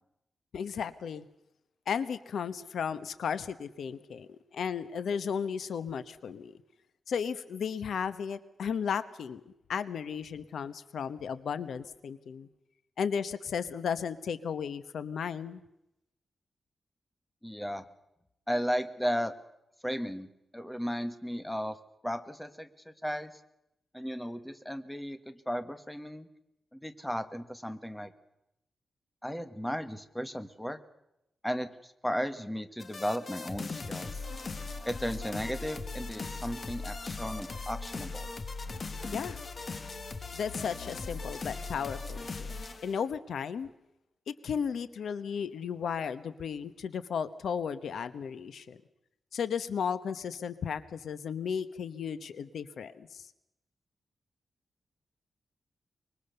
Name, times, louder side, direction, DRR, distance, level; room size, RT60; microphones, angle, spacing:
voice 1, 0.5-1.3 1.9-6.6 7.1-12.5 13.0-15.6 39.1-39.4 40.3-43.7 44.3-48.8 49.3-53.2, left 7 dB, 80° left, 14 dB, 1.0 m, -35 dB
voice 2, 17.4-17.8 18.5-19.3 19.8-20.3 20.5-23.3 23.9-26.3 26.7-28.1 29.2-30.8 31.4-34.1 34.8-38.3, equal, 5° left, 10 dB, 1.4 m, -35 dB
sound 1, 32.8-43.0, left 3 dB, 40° left, 1.5 m, -39 dB
25.0 x 22.0 x 6.8 m, 0.87 s
wide cardioid pair, 135°, 0 cm